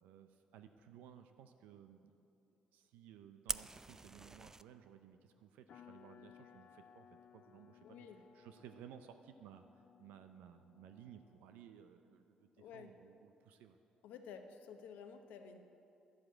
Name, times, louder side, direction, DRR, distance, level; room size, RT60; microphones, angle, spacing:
voice 1, 0.0-2.1 2.7-8.1 8.3-13.8, right 9 dB, 85° right, 8 dB, 0.5 m, -58 dB
Fire, 3.5-4.6, right 2 dB, 20° right, 0.4 m, -43 dB
sound 1, 5.7-11.9, left 9 dB, 60° left, 0.4 m, -62 dB
voice 2, 7.8-8.2 12.6-12.9 14.0-15.6, left 6 dB, 80° left, 6 dB, 0.8 m, -52 dB
11.0 x 7.6 x 8.4 m, 2.8 s
supercardioid pair, 65°, 3 cm